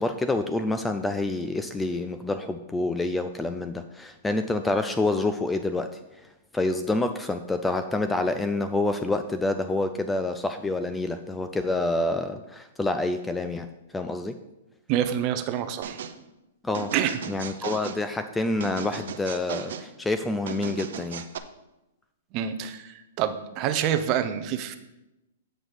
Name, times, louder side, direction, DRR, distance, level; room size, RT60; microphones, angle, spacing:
voice 1, 0.0-5.9 6.2-13.7 13.9-14.4 16.6-16.9 17.2-21.2, left 2 dB, 5° left, 8 dB, 0.4 m, -27 dB
voice 2, 14.9-16.0 16.9-17.2 22.3-24.8, right 10 dB, 35° right, 10 dB, 0.7 m, -27 dB
sound 1, 15.8-16.2 16.7-18.0 18.6-19.9 20.5-21.4, right 8 dB, 65° right, 0.7 m, -36 dB
7.9 x 5.2 x 5.9 m, 0.94 s
hypercardioid pair, 150°, 0 cm